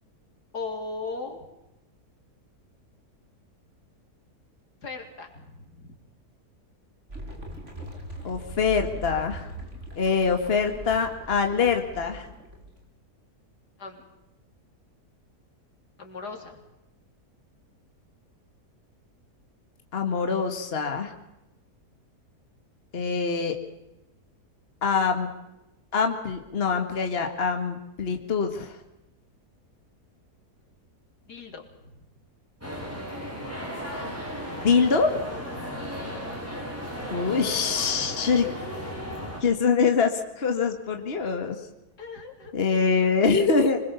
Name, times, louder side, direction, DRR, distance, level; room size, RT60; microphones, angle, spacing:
voice 1, 0.5-1.5 4.8-5.9 13.8-14.0 16.0-16.6 31.3-32.0 35.6-35.9 42.0-42.6, left 3 dB, 80° left, 2 dB, 3.9 m, -38 dB
sound 1, 7.1-12.8, equal, 45° right, 5.0 m, -40 dB
voice 2, 8.2-9.5 10.0-12.3 19.9-21.1 22.9-23.6 24.8-25.3 25.9-28.7 34.6-35.2 37.1-38.5 39.4-41.6 42.5-43.8, left 5 dB, 40° left, 5 dB, 2.0 m, -24 dB
sound 2, 32.6-39.4, equal, 10° right, 7.1 m, -35 dB
26.0 x 21.0 x 7.0 m, 0.94 s
omnidirectional pair, 1.7 m